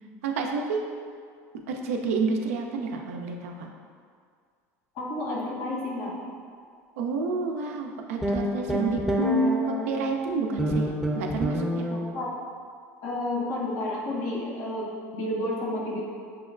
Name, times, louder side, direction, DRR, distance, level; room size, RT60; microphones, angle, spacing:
voice 1, 0.2-0.8 1.7-3.7 7.0-10.9 11.1-11.9, right 3 dB, 80° right, 2 dB, 0.4 m, -29 dB
voice 2, 5.0-6.2 11.9-12.3 13.0-14.9 15.1-16.0, left 1 dB, 65° left, -6 dB, 1.4 m, -31 dB
sound 1, 8.2-10.0 10.6-12.1, right 1 dB, ahead, 0.6 m, -27 dB
5.9 x 2.1 x 2.4 m, 2.1 s
hypercardioid pair, 85°, 8 cm